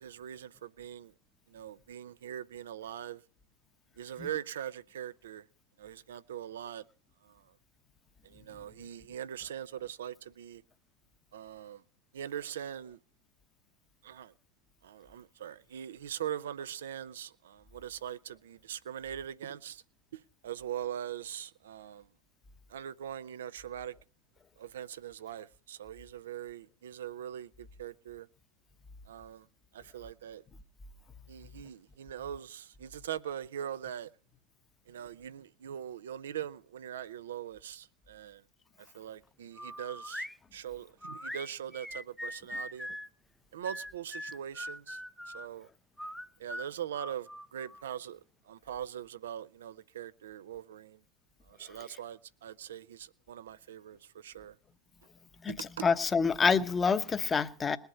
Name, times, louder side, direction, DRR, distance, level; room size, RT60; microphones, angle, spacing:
voice 1, 0.0-1.1 1.5-3.2 4.0-5.5 5.8-6.9 7.2-7.5 8.2-10.6 11.3-11.8 12.1-13.0 14.0-14.3 14.8-19.8 20.1-22.1 22.7-23.9 24.6-28.3 29.1-29.5 29.7-30.4 31.3-34.1 34.9-38.4 38.8-42.9 43.5-45.0 45.3-45.7 46.4-51.0 51.5-54.6 55.5-55.9, right 10 dB, 75° right, 0.6 m, -42 dB
sound 1, 39.6-40.4 41.0-43.1 43.6-45.5 46.0-47.8, left 1 dB, 5° left, 0.6 m, -41 dB
voice 2, 55.4-57.8, left 5 dB, 25° left, 0.9 m, -27 dB
20.5 x 8.0 x 5.6 m
hypercardioid pair, 90°, 0 cm